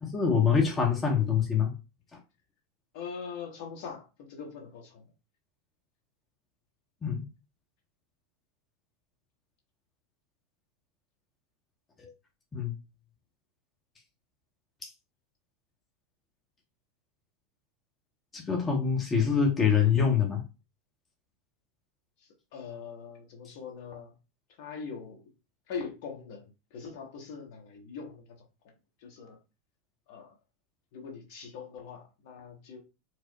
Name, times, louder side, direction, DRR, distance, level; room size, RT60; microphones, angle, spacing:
voice 1, 0.0-1.7 7.0-7.2 12.0-12.1 12.5-12.7 14.8-14.9 18.3-20.4, left 6 dB, 20° left, 0.8 m, -25 dB
voice 2, 2.9-5.0 22.5-24.1 24.6-25.2 25.7-28.3 29.0-29.4 30.1-30.3 30.9-32.8, left 6 dB, 55° left, 1.1 m, -42 dB
4.6 x 2.0 x 2.9 m
figure-of-eight pair, 85°, 0 cm